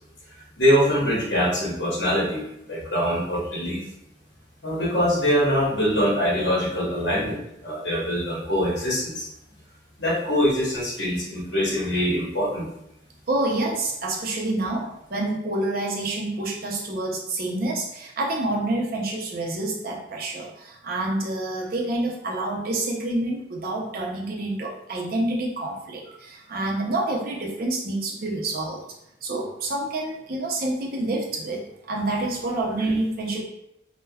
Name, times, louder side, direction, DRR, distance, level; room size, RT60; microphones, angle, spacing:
voice 1, 0.6-3.8 4.6-9.3 10.0-12.7 32.8-32.9, equal, 65° left, -5 dB, 1.0 m, -23 dB
voice 2, 13.3-28.8 29.2-33.4, right 2 dB, 50° right, -2 dB, 0.5 m, -28 dB
3.3 x 2.1 x 2.2 m, 0.83 s
head